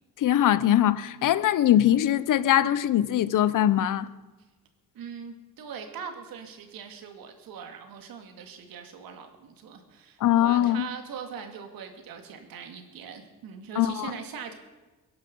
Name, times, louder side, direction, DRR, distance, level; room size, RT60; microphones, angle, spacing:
voice 1, 0.2-4.1 10.2-10.9 13.8-14.1, left 12 dB, 65° left, 0.8 m, -22 dB
voice 2, 4.9-14.5, right 7 dB, 80° right, 2.4 m, -41 dB
22.0 x 11.5 x 5.4 m
cardioid pair, 155°, 34 cm